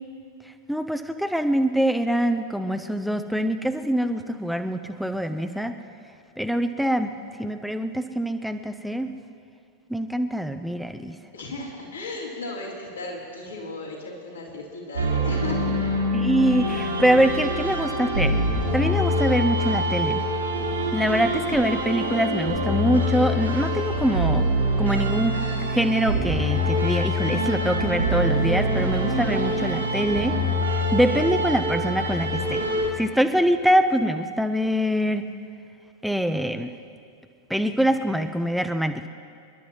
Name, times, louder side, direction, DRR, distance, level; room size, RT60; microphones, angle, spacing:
voice 1, 0.7-5.7 6.4-7.1 7.4-9.1 9.9-11.2 16.1-18.3 18.7-20.2 20.9-24.4 24.8-30.3 30.7-32.6 33.0-35.2 36.0-36.7 37.5-39.1, equal, ahead, 7 dB, 0.5 m, -24 dB
voice 2, 11.3-15.8, left 2 dB, 75° left, -6 dB, 3.6 m, -35 dB
sound 1, 14.9-32.9, equal, 80° right, 2.9 m, -25 dB
28.0 x 11.5 x 3.2 m, 2.4 s
figure-of-eight pair, 90°, 0 cm